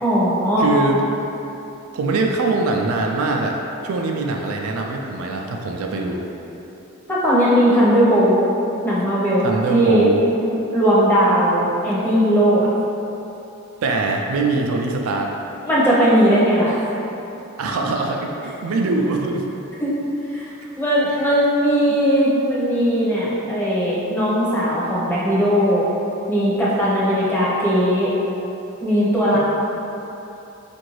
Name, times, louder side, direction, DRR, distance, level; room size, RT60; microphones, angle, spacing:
voice 1, 0.0-0.7 7.1-8.4 8.8-10.1 10.4-12.7 15.6-16.8 19.8-19.9 20.3-20.5 20.8-25.8 26.3-28.1 28.8-29.4, equal, 10° left, -9 dB, 0.7 m, -18 dB
voice 2, 0.6-1.2 1.9-6.2 9.4-10.2 13.8-15.3 17.6-19.5 21.1-21.2, right 3 dB, 80° right, 1 dB, 0.4 m, -22 dB
4.6 x 2.5 x 3.1 m, 2.9 s
head